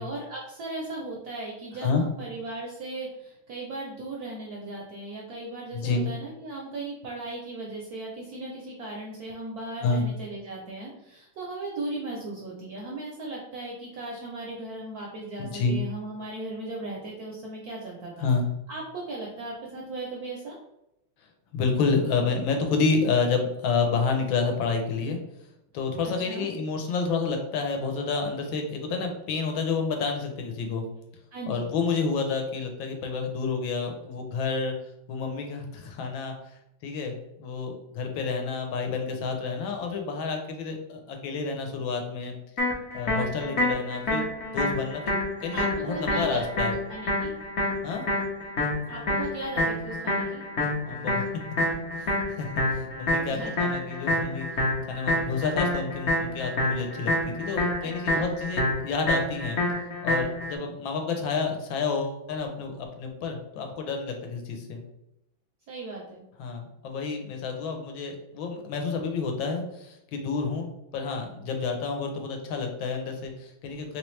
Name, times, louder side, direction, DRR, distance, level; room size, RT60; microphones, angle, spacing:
voice 1, 0.0-18.3 18.7-20.6 26.0-26.5 31.3-31.7 45.5-47.3 48.9-50.4 53.3-53.5 54.0-54.1 57.8-58.4 65.7-66.2, right 2 dB, 70° right, -3 dB, 0.9 m, -37 dB
voice 2, 5.7-6.0 9.8-10.0 15.4-15.8 18.2-18.5 21.5-25.2 25.7-30.8 31.5-34.7 35.1-36.3 36.8-42.3 42.9-44.3 44.5-45.2 45.4-46.8 47.8-48.0 50.9-51.2 52.0-52.5 52.7-54.5 54.9-59.6 60.0-64.8 66.4-74.0, left 4 dB, 75° left, 3 dB, 1.4 m, -29 dB
sound 1, 42.6-60.6, left 1 dB, 55° left, 0.7 m, -28 dB
3.3 x 3.1 x 3.1 m, 0.84 s
omnidirectional pair, 2.2 m